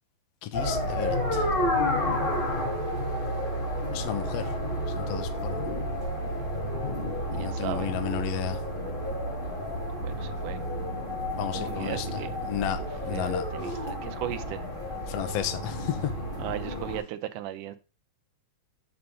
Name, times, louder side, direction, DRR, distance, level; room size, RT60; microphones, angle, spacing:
voice 1, 0.4-1.5 3.9-4.5 5.0-5.7 7.3-8.6 11.4-12.1 12.4-13.5 15.1-16.1, left 11 dB, 65° left, 1.7 m, -33 dB
sound 1, 0.5-17.0, equal, 15° left, 4.8 m, -31 dB
voice 2, 7.4-7.9 10.0-10.6 11.4-12.3 12.8-12.9 13.1-14.6 16.4-17.8, right 13 dB, 80° right, 2.4 m, -37 dB
6.8 x 6.6 x 5.6 m
omnidirectional pair, 3.7 m